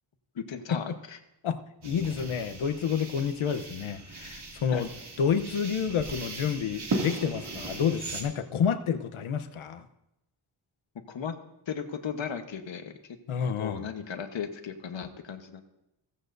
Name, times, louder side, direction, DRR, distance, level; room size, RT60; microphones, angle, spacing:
voice 1, 0.3-1.2 4.7-4.8 10.9-11.3 11.7-13.2 13.6-15.6, left 7 dB, 65° left, 6 dB, 1.2 m, -36 dB
voice 2, 1.8-4.9 5.2-9.9 13.3-13.8, left 7 dB, 85° left, 9 dB, 1.0 m, -29 dB
sound 1, 1.8-8.2, right 2 dB, 55° right, 2.5 m, -37 dB
17.0 x 14.5 x 2.7 m, 0.88 s
wide cardioid pair, 145°, 48 cm